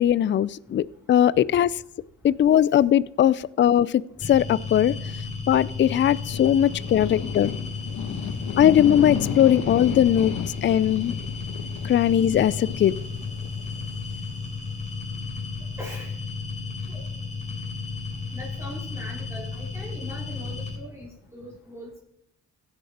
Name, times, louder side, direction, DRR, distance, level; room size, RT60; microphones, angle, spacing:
voice 1, 0.0-1.7 2.2-4.0 4.3-4.9 5.5-7.5 8.6-10.3 10.6-11.1 11.8-12.9, left 10 dB, 40° left, 20 dB, 0.4 m, -20 dB
sound 1, 4.2-20.8, left 4 dB, 20° left, 4.0 m, -33 dB
sound 2, 5.6-16.0, left 8 dB, 70° left, 1.3 m, -35 dB
voice 2, 8.1-8.5 15.8-16.1 16.9-17.0 18.3-21.9, equal, 10° right, -3 dB, 3.5 m, -41 dB
15.5 x 10.5 x 4.3 m, 0.78 s
cardioid pair, 90°, 30 cm